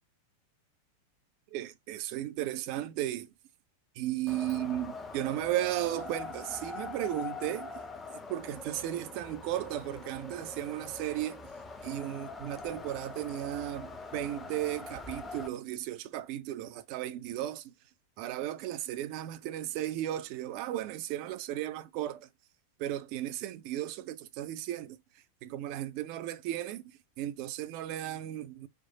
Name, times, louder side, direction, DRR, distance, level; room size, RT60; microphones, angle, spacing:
voice 1, 1.5-3.3 4.0-7.8 8.1-11.4 11.8-17.7 18.2-22.3 22.8-25.0 25.4-26.8 27.2-28.7, right 13 dB, 45° right, 0.4 m, -35 dB
Wind, 4.3-15.5, left 4 dB, 15° left, 0.7 m, -43 dB
4.4 x 2.0 x 2.7 m
figure-of-eight pair, 90°, 0 cm